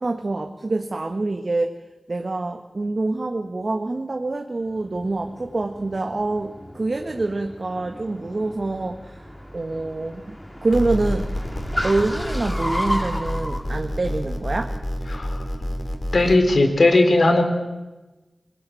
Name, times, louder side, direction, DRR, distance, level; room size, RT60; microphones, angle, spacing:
voice 1, 0.0-1.7 2.1-9.2 9.5-11.3 11.8-14.7, right 2 dB, 55° right, 5 dB, 1.6 m, -26 dB
Car, 4.7-13.6, equal, 10° left, 3.1 m, -34 dB
sound 1, 10.7-16.4, equal, 40° left, 4.5 m, -28 dB
voice 2, 15.1-15.4 16.1-17.4, left 2 dB, 70° left, 6 dB, 4.3 m, -17 dB
26.0 x 20.0 x 9.3 m, 1.1 s
wide cardioid pair, 60°, 0 cm